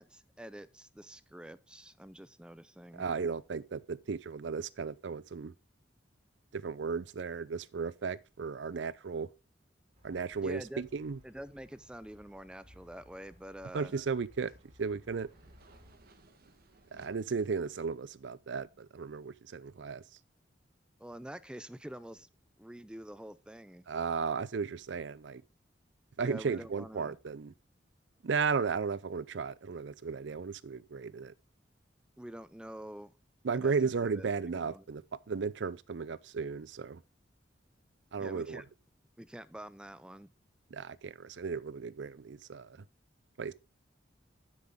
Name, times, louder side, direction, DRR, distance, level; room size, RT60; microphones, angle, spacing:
voice 1, 0.0-3.1 10.4-10.8 11.2-13.9 21.0-22.3 22.6-23.8 26.2-27.2 32.2-33.1 33.5-34.8 38.2-38.6 39.2-40.3, right 1 dB, 5° right, 0.4 m, -47 dB
voice 2, 3.0-5.5 6.5-9.3 10.0-11.2 13.7-14.5 14.8-15.3 16.9-20.0 23.9-25.4 26.2-27.5 28.2-31.3 33.4-35.0 35.3-37.0 38.1-38.6 40.7-42.8 43.4-43.5, right 5 dB, 70° right, 0.5 m, -35 dB
sound 1, 9.9-15.9, equal, 35° right, 3.9 m, -61 dB
sound 2, 14.5-19.2, right 2 dB, 55° right, 1.4 m, -64 dB
9.5 x 7.8 x 3.6 m
head